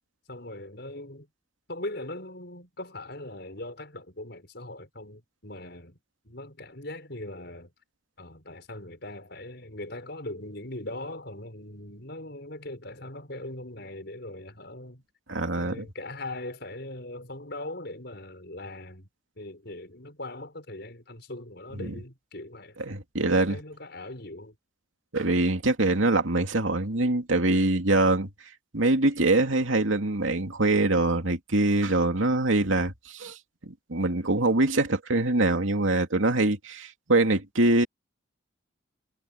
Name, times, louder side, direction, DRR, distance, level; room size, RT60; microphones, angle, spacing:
voice 1, 0.3-1.3 1.7-6.0 6.2-7.7 8.2-15.0 15.6-19.1 19.4-22.8 23.2-24.5, left 1 dB, 55° left, 6.4 m, -40 dB
voice 2, 15.3-15.9 21.8-21.9 22.9-23.6 25.1-28.3 28.7-33.4 33.7-37.9, right 2 dB, 85° right, 2.7 m, -24 dB
head